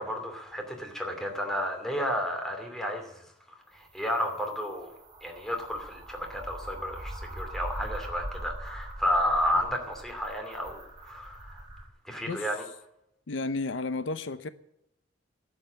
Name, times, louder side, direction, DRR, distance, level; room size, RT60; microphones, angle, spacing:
voice 1, 0.0-3.1 3.7-4.9 5.2-11.6 12.0-12.6, equal, ahead, 3 dB, 2.6 m, -32 dB
sound 1, 3.7-11.9, right 1 dB, 25° right, 3.2 m, -42 dB
voice 2, 13.3-14.5, left 3 dB, 80° left, 13 dB, 0.7 m, -32 dB
11.5 x 7.9 x 9.3 m, 0.83 s
head